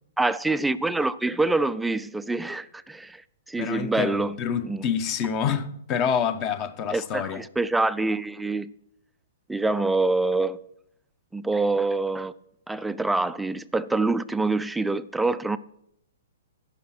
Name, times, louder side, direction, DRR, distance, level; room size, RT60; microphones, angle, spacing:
voice 1, 0.2-3.2 3.5-4.4 4.6-4.8 6.9-8.7 9.5-10.6 11.3-12.3 12.7-15.6, right 2 dB, 5° right, 0.4 m, -25 dB
voice 2, 3.6-7.4, left 7 dB, 30° left, 0.9 m, -27 dB
15.0 x 5.6 x 6.0 m
hypercardioid pair, 150°, 0 cm